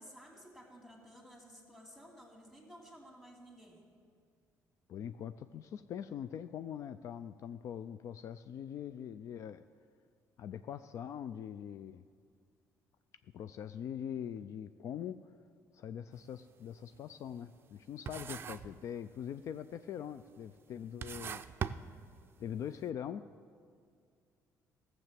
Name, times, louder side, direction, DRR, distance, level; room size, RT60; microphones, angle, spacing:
voice 1, 0.0-3.8 18.2-18.3, equal, 5° left, 0 dB, 2.5 m, -54 dB
voice 2, 4.9-9.6 10.4-12.0 13.3-15.2 15.7-21.4 22.4-23.2, left 9 dB, 55° left, 12 dB, 0.3 m, -42 dB
sound 1, 16.1-16.4 16.8-17.8 18.1-18.8 19.1-19.6 20.3-20.4 20.8-22.5, right 7 dB, 40° right, 0.4 m, -41 dB
15.0 x 7.1 x 7.5 m, 2.2 s
cardioid pair, 130°, 6 cm